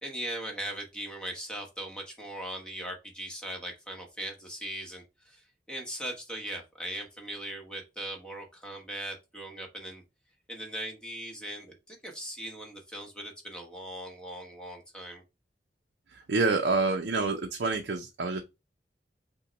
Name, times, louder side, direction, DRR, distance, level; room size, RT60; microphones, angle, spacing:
voice 1, 0.0-10.0 10.5-15.2, right 1 dB, 5° left, 1.1 m, -39 dB
voice 2, 16.1-18.4, right 3 dB, 70° right, 0.5 m, -27 dB
5.5 x 2.2 x 4.0 m
head